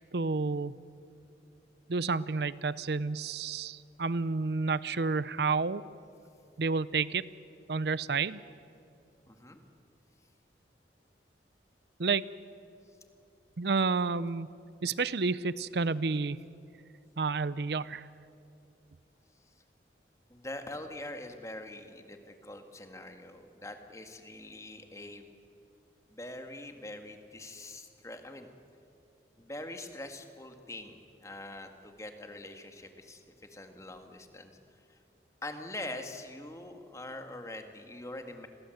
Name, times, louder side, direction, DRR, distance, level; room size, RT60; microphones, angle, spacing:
voice 1, 0.1-0.8 1.9-5.8 6.6-7.2 7.7-8.4 12.0-12.3 13.6-14.5 14.8-16.4 17.2-18.1, right 4 dB, 65° right, 17 dB, 0.6 m, -30 dB
voice 2, 9.3-9.6 19.5-19.6 20.3-25.3 26.1-28.5 29.4-34.5 34.9-35.0 35.4-38.5, left 1 dB, 15° left, 6 dB, 1.9 m, -44 dB
30.0 x 22.5 x 7.9 m, 2.6 s
head